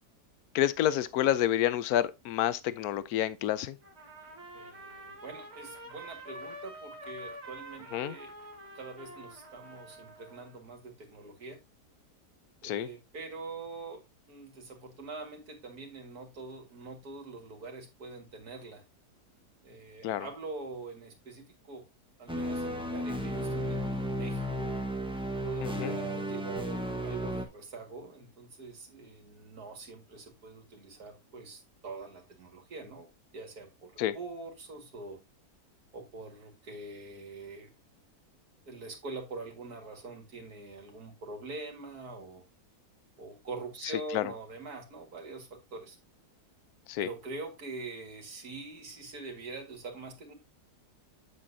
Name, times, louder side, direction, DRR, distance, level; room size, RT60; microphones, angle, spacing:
voice 1, 0.5-3.8 7.9-8.2 12.6-12.9 20.0-20.3 25.6-26.0 34.0-34.1 44.1-44.3 46.9-47.1, left 12 dB, 70° left, 1.1 m, -29 dB
Trumpet, 3.8-10.6, right 1 dB, 40° right, 2.0 m, -47 dB
voice 2, 4.5-8.3 8.7-11.6 12.6-14.0 14.3-18.8 19.6-21.8 22.2-24.7 25.4-35.2 35.9-37.7 38.7-42.4 43.2-46.0 47.0-50.3, right 3 dB, 65° right, 2.4 m, -44 dB
sound 1, 22.3-27.4, equal, 5° right, 0.9 m, -33 dB
8.0 x 7.6 x 2.7 m
omnidirectional pair, 1.8 m